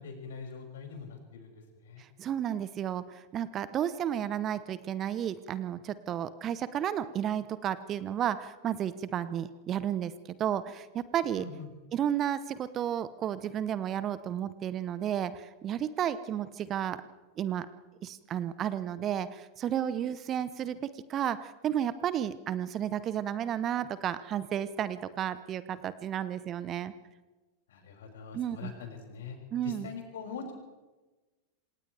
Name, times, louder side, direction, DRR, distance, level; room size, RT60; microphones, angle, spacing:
voice 1, 0.0-2.0 11.3-11.7 27.7-29.4 29.6-30.5, left 5 dB, 60° left, 1 dB, 6.8 m, -43 dB
voice 2, 2.0-11.5 11.9-17.0 17.4-17.7 18.0-26.9 28.3-28.7 29.5-29.9, right 10 dB, 30° right, 15 dB, 1.0 m, -32 dB
27.5 x 27.0 x 3.5 m, 1.2 s
figure-of-eight pair, 90°, 0 cm